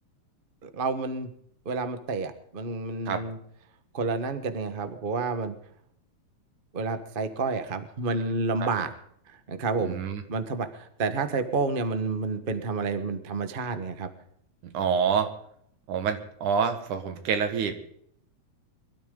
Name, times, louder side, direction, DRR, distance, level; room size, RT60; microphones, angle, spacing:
voice 1, 0.6-1.3 1.6-3.4 3.9-5.5 6.7-8.9 9.3-10.0 10.3-14.1, right 4 dB, 70° right, 9 dB, 0.5 m, -29 dB
voice 2, 9.8-10.2 14.7-15.3 15.9-17.7, right 6 dB, 85° right, 8 dB, 3.2 m, -27 dB
23.0 x 13.0 x 3.9 m, 0.67 s
omnidirectional pair, 3.4 m